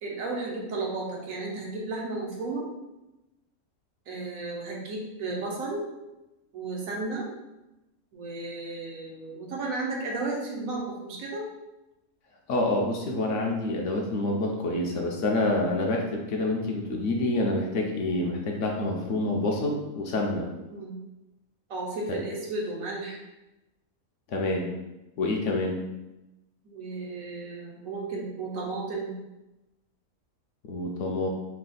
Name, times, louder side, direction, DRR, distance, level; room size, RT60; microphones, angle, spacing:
voice 1, 0.0-2.7 4.1-5.9 6.5-7.3 8.1-11.5 20.7-21.0 21.7-23.2 26.6-29.2, right 3 dB, 75° right, -2 dB, 1.2 m, -33 dB
voice 2, 12.5-20.5 22.1-22.2 24.3-24.7 25.2-25.8 30.6-31.3, left 2 dB, 70° left, 0 dB, 0.9 m, -27 dB
3.4 x 2.4 x 3.8 m, 0.97 s
omnidirectional pair, 1.5 m